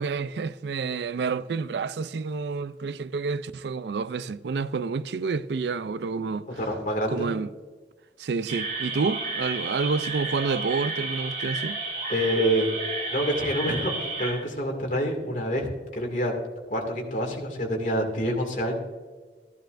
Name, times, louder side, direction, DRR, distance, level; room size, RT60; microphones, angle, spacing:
voice 1, 0.0-6.5 7.1-7.5 8.2-11.8, right 4 dB, 75° right, 0.4 m, -29 dB
voice 2, 6.6-7.3 12.1-12.7 13.1-15.7 15.9-16.4 16.7-18.8, equal, 45° left, 2.2 m, -27 dB
sound 1, 8.5-14.3, right 3 dB, 40° right, 3.8 m, -32 dB
14.5 x 11.5 x 2.6 m
head